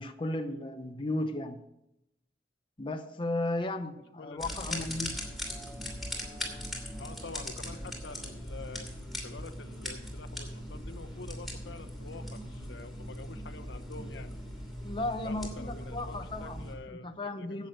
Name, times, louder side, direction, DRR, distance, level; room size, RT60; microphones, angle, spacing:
voice 1, 0.0-1.6 2.8-5.1 14.8-17.7, left 2 dB, 30° left, 0.8 m, -35 dB
voice 2, 4.2-4.9 7.0-8.9 9.2-14.3 15.2-17.7, left 3 dB, 80° left, 0.9 m, -47 dB
sound 1, 4.3-9.8, right 1 dB, 25° right, 2.1 m, -56 dB
sound 2, 4.4-16.7, equal, ahead, 2.8 m, -40 dB
10.5 x 8.4 x 6.5 m
head